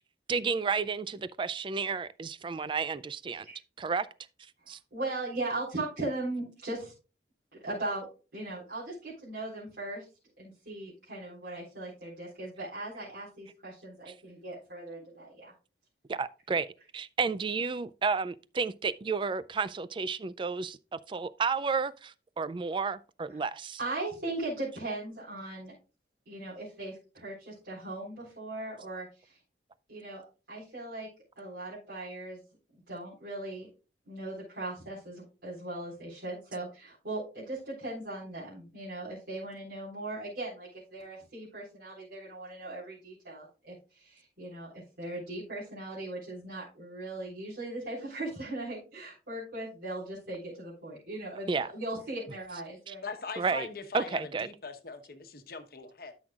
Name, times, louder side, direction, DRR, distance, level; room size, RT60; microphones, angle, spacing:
voice 1, 0.3-3.5 3.8-4.1 4.7-4.8 16.1-16.7 16.9-23.8 51.5-51.7 52.9-53.0 53.4-53.7 53.9-54.5, right 5 dB, 30° right, 0.3 m, -31 dB
voice 2, 4.6-6.9 7.6-8.1 8.3-10.1 10.4-15.5 23.3-23.4 23.8-25.7 26.3-29.4 29.9-31.1 31.4-32.4 32.7-33.7 34.1-53.1, right 2 dB, 70° right, 3.9 m, -39 dB
voice 3, 53.0-56.1, left 3 dB, 55° left, 1.1 m, -41 dB
12.5 x 6.2 x 2.4 m
head